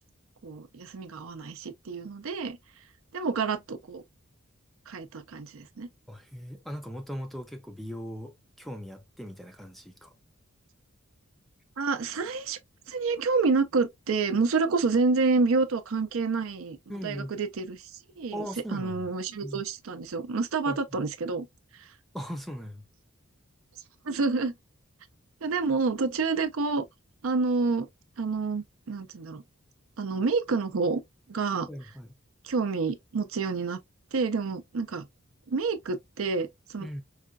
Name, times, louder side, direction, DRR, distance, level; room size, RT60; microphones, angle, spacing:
voice 1, 0.4-2.6 3.1-4.0 4.9-5.9 11.8-12.6 12.9-17.8 18.2-21.5 21.8-21.9 24.0-24.5 25.4-26.8 27.2-27.9 28.2-29.4 30.0-31.0 31.3-31.7 32.4-33.8 34.1-35.1 35.5-36.9, right 4 dB, 75° right, 0.5 m, -28 dB
voice 2, 6.1-8.3 8.6-10.1 16.9-17.3 18.3-19.1 19.4-19.6 20.7-21.0 22.1-22.8 31.7-32.1 36.8-37.0, equal, ahead, 0.4 m, -39 dB
4.8 x 2.2 x 2.3 m
head